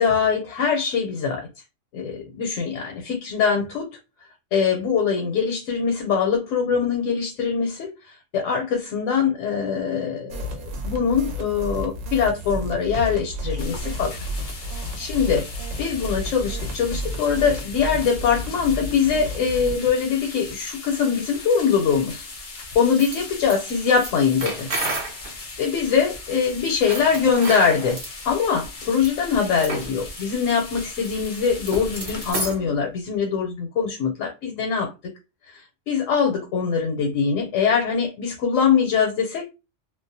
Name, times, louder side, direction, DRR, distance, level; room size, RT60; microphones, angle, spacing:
voice 1, 0.0-1.5 1.9-3.9 4.5-7.9 8.3-14.1 14.7-15.4 15.8-22.3 22.7-24.7 25.3-34.9 35.5-39.5, left 6 dB, 80° left, 1.0 m, -23 dB
sound 1, 10.3-19.8, equal, 80° right, 0.9 m, -32 dB
sound 2, 13.6-32.3, left 3 dB, 50° left, 0.6 m, -38 dB
sound 3, 22.8-25.3 26.7-28.1 28.9-29.1 29.6-29.9 30.2-30.3 30.6-32.7, right 2 dB, 50° right, 0.9 m, -31 dB
2.4 x 2.0 x 2.6 m
omnidirectional pair, 1.3 m